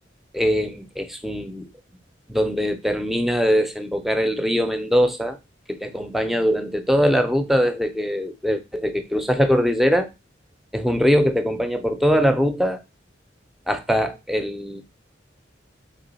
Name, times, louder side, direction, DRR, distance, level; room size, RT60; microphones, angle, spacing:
voice 1, 0.3-1.7 2.3-5.4 5.7-10.1 10.7-12.8 13.7-14.8, equal, ahead, 0.5 m, -22 dB
3.7 x 3.6 x 3.9 m
head